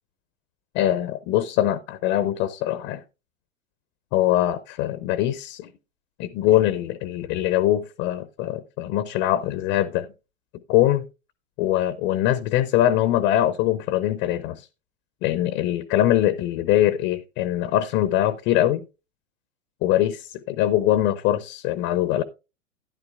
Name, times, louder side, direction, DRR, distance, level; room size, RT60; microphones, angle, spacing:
voice 1, 0.7-3.0 4.1-5.7 6.2-10.1 10.7-11.0 11.6-14.7 15.2-18.8 19.8-22.2, left 13 dB, 20° left, 0.4 m, -22 dB
12.5 x 10.5 x 2.3 m
figure-of-eight pair, 100°, 39 cm